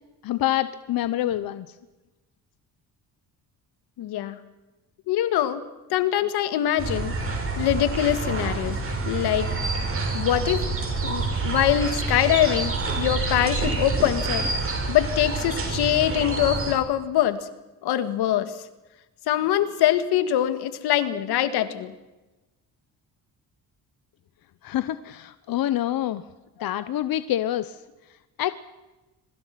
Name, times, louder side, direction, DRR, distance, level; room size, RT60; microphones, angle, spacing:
voice 1, 0.2-1.7 24.6-26.2 26.6-27.8 28.4-28.5, left 13 dB, 65° left, 13 dB, 0.9 m, -26 dB
voice 2, 4.0-4.4 5.1-5.6 5.9-7.1 7.6-8.8 9.1-9.5 10.1-10.7 11.0-14.5 14.9-17.4 17.8-18.6 19.3-21.9 26.6-26.7, left 12 dB, 85° left, 11 dB, 1.8 m, -23 dB
sound 1, 6.8-16.7, right 3 dB, 35° right, 7.1 m, -27 dB
26.0 x 24.0 x 5.9 m, 1.1 s
cardioid pair, 105°, 38 cm